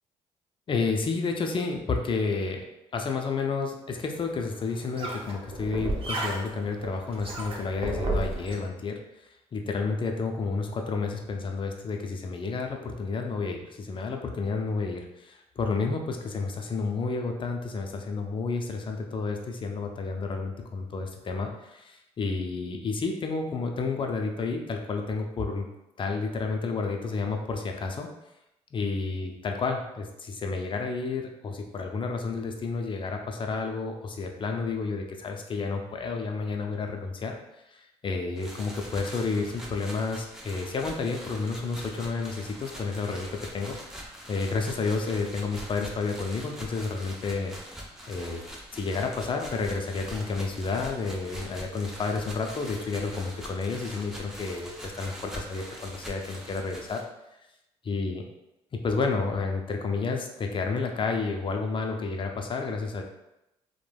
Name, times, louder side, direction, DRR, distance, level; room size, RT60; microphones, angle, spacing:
voice 1, 0.7-2.6 2.9-25.7 26.0-28.1 28.7-37.4 37.7-43.8 44.3-47.6 48.1-48.4 48.7-57.0 57.9-58.3 58.7-63.0, left 4 dB, 40° left, 3 dB, 0.5 m, -31 dB
sound 1, 4.1-8.5, right 2 dB, 40° right, 0.7 m, -33 dB
sound 2, 38.4-57.0, equal, 5° right, 0.7 m, -43 dB
3.1 x 2.2 x 2.3 m, 0.89 s
supercardioid pair, 60°, 14 cm